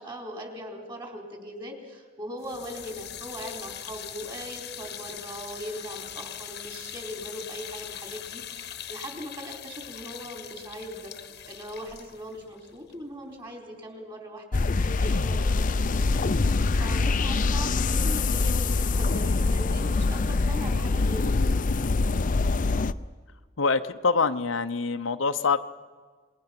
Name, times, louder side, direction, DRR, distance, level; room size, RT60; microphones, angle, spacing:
voice 1, 0.0-11.1 11.5-15.9 16.8-21.4, equal, 25° right, 1 dB, 4.1 m, -40 dB
sound 1, 2.4-13.5, left 10 dB, 60° left, 1.1 m, -41 dB
sound 2, 14.5-22.9, left 3 dB, 45° left, 0.6 m, -24 dB
voice 2, 23.6-25.6, left 4 dB, 85° left, 9 dB, 0.8 m, -25 dB
27.5 x 21.0 x 6.0 m, 1.5 s
head